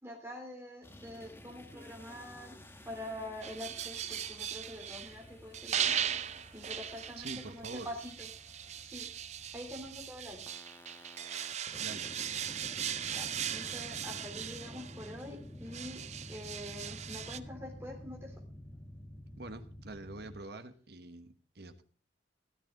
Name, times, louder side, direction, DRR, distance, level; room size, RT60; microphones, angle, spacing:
voice 1, 0.0-2.5 2.8-5.9 6.5-8.3 8.8-9.1 9.5-10.4 11.0-11.1 13.1-16.0 16.3-18.3, left 1 dB, 15° right, 1 dB, 3.5 m, -45 dB
sound 1, 0.8-20.4, left 1 dB, 15° left, 1.1 m, -51 dB
sound 2, 3.4-5.2 5.5-15.3 15.7-17.4, right 9 dB, 40° right, 0.5 m, -38 dB
voice 2, 7.2-7.9 11.8-12.1 19.4-21.8, right 2 dB, 60° right, 9 dB, 1.2 m, -45 dB
14.0 x 13.0 x 3.9 m, 0.40 s
head